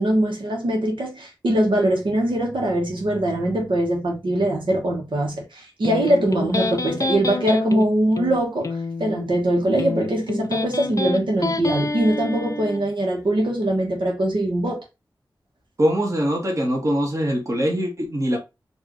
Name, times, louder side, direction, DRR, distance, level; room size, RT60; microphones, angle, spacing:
voice 1, 0.0-14.8, right 1 dB, 85° right, 1.4 m, -22 dB
Electric guitar, 5.8-12.8, left 3 dB, 40° left, 0.5 m, -28 dB
voice 2, 15.8-18.4, equal, 40° right, 1.5 m, -22 dB
4.6 x 2.8 x 3.1 m
wide cardioid pair, 85°, 8 cm